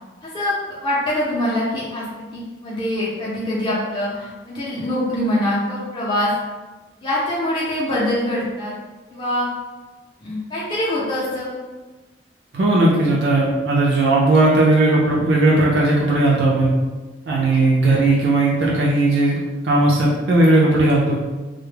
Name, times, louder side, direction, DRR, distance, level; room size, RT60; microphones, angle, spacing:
voice 1, 0.2-0.5 0.8-6.3 7.0-8.7 9.1-9.5 10.2-11.5 17.5-17.6, left 1 dB, 30° left, -8 dB, 0.5 m, -24 dB
voice 2, 12.5-16.7 17.3-19.4 19.6-21.2, right 2 dB, 80° right, -4 dB, 0.4 m, -17 dB
2.1 x 2.0 x 3.2 m, 1.2 s
head